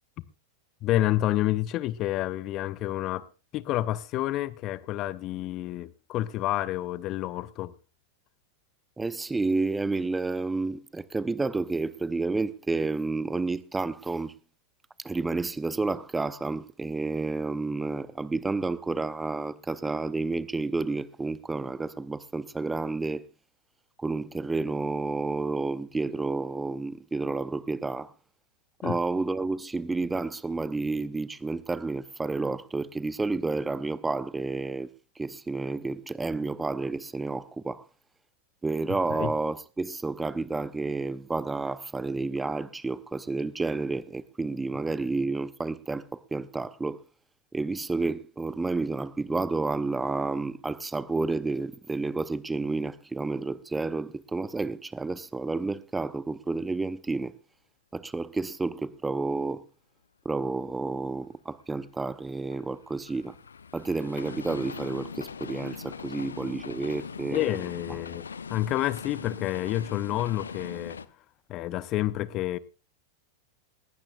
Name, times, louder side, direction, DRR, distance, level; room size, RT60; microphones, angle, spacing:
voice 1, 0.8-3.3 3.5-7.7 28.8-29.0 39.1-39.3 67.3-71.0 71.5-72.6, left 14 dB, 35° left, 0.7 m, -29 dB
voice 2, 9.0-14.3 15.0-23.2 24.0-28.1 28.8-34.9 35.2-37.8 38.6-47.0 47.5-57.3 57.9-59.6 60.2-63.4 63.7-67.6, right 3 dB, 10° right, 0.7 m, -30 dB
sound 1, 61.7-71.1, left 6 dB, 70° left, 0.7 m, -41 dB
20.5 x 16.0 x 2.4 m
figure-of-eight pair, 90°, 0 cm